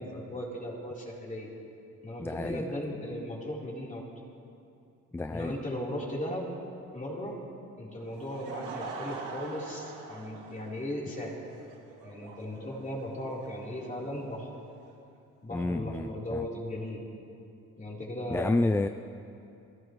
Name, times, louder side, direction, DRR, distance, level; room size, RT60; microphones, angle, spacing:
voice 1, 0.0-1.5 2.0-4.0 5.3-6.5 6.9-7.4 7.8-11.5 12.0-14.5 15.4-17.1 17.8-18.6, left 1 dB, 25° left, -4 dB, 3.9 m, -37 dB
voice 2, 2.2-2.6 5.1-5.6 15.5-16.4 18.3-18.9, left 2 dB, 10° left, 10 dB, 0.3 m, -29 dB
Laughter / Crowd, 8.0-14.9, right 4 dB, 90° right, 2.1 m, -44 dB
29.5 x 15.0 x 3.2 m, 2.6 s
cardioid pair, 90°, 30 cm